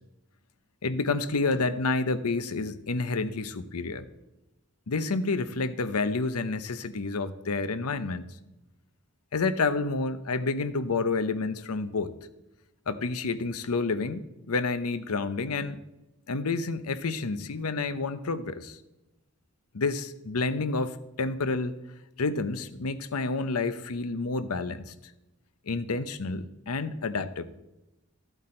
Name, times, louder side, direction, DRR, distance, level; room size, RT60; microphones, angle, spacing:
voice 1, 0.8-4.0 4.9-8.2 9.3-12.1 12.9-15.8 16.3-18.8 19.7-21.7 22.2-24.9 25.7-27.4, left 3 dB, 85° left, 13 dB, 0.7 m, -29 dB
14.0 x 8.1 x 4.3 m, 0.96 s
head